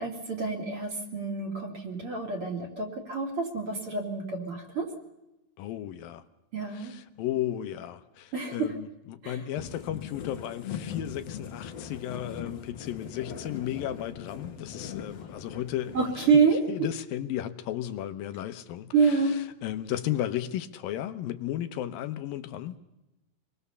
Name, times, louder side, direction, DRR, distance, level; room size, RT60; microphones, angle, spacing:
voice 1, 0.0-4.9 6.5-6.9 8.3-8.8 9.2-9.4 15.9-16.9 18.9-19.4, right 5 dB, 40° right, 3.6 m, -27 dB
voice 2, 5.6-6.2 6.7-16.4 16.7-22.7, left 12 dB, 85° left, 2.7 m, -34 dB
sound 1, 9.6-16.3, left 7 dB, 50° left, 2.4 m, -40 dB
26.0 x 20.5 x 6.9 m
omnidirectional pair, 4.0 m